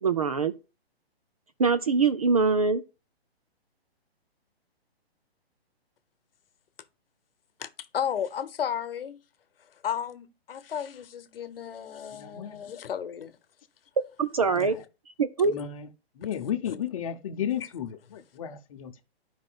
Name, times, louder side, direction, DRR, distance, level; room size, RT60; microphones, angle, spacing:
voice 1, 0.0-0.5 1.6-2.8 14.2-14.7 15.2-15.5, right 4 dB, 35° right, 0.4 m, -23 dB
voice 2, 7.6-9.2 9.8-13.4, left 8 dB, 60° left, 0.9 m, -33 dB
voice 3, 12.1-12.6 14.5-14.8 15.4-15.9 16.1-19.0, left 9 dB, 30° left, 0.8 m, -34 dB
12.0 x 5.1 x 2.3 m
hypercardioid pair, 155°, 32 cm